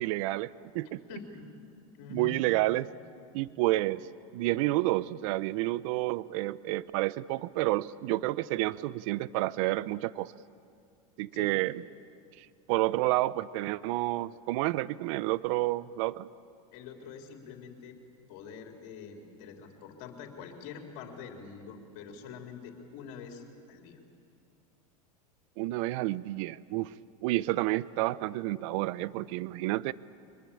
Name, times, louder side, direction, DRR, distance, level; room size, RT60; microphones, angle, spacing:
voice 1, 0.0-1.0 2.1-2.9 3.3-4.1 4.3-10.3 11.2-11.7 12.4-16.3 25.6-26.9 27.2-29.9, right 18 dB, 65° right, 18 dB, 0.7 m, -30 dB
voice 2, 1.1-1.5 2.0-2.4 11.3-11.5 16.7-18.0 18.3-24.0, left 6 dB, 60° left, 2 dB, 3.7 m, -45 dB
24.0 x 21.5 x 8.6 m, 2.4 s
supercardioid pair, 120°, 18 cm